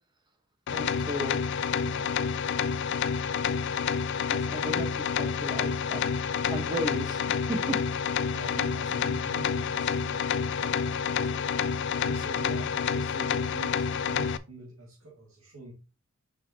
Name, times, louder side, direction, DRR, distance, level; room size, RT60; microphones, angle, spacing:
sound 1, 0.7-14.4, left 6 dB, 55° left, 0.3 m, -29 dB
voice 1, 0.7-1.4 1.8-2.1 4.3-6.2 6.5-7.8, equal, 20° right, 1.1 m, -35 dB
voice 2, 8.3-15.7, right 2 dB, 70° right, 2.2 m, -45 dB
6.3 x 6.1 x 2.8 m
head